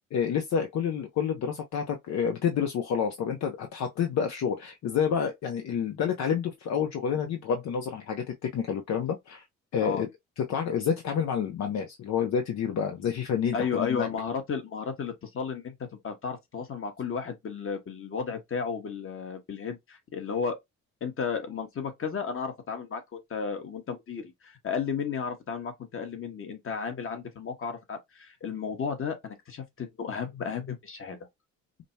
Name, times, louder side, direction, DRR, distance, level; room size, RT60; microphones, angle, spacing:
voice 1, 0.1-9.4 9.7-10.1 10.4-14.1, left 7 dB, 65° left, 0.7 m, -29 dB
voice 2, 13.5-15.7 16.0-20.6 21.0-31.2, left 6 dB, 45° left, 1.3 m, -33 dB
5.1 x 2.1 x 2.7 m
cardioid pair, 90°, 30 cm